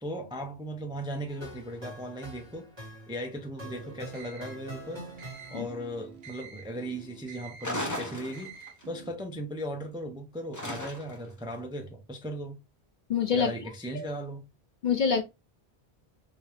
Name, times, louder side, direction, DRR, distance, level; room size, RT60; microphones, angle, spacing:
voice 1, 0.0-2.7 3.1-5.1 5.5-12.6 13.3-14.5, equal, 5° right, 0.3 m, -37 dB
sound 1, 1.3-6.0, right 1 dB, 25° right, 1.7 m, -45 dB
sound 2, 3.6-9.1, right 5 dB, 70° right, 1.2 m, -47 dB
sound 3, 7.6-8.8 10.5-11.3, left 1 dB, 20° left, 0.7 m, -35 dB
voice 2, 13.1-13.5 13.9-14.0 14.8-15.2, left 6 dB, 60° left, 0.5 m, -25 dB
3.2 x 2.7 x 3.3 m
omnidirectional pair, 1.1 m